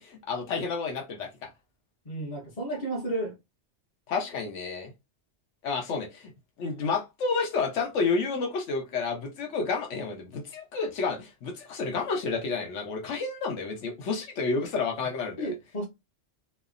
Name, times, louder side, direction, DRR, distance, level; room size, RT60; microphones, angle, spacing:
voice 1, 0.0-1.5 4.1-4.9 5.6-6.3 6.6-15.5, left 4 dB, 85° left, 1.1 m, -30 dB
voice 2, 2.0-3.4 15.4-15.9, right 1 dB, 35° left, 0.9 m, -32 dB
3.2 x 2.0 x 2.4 m
omnidirectional pair, 1.2 m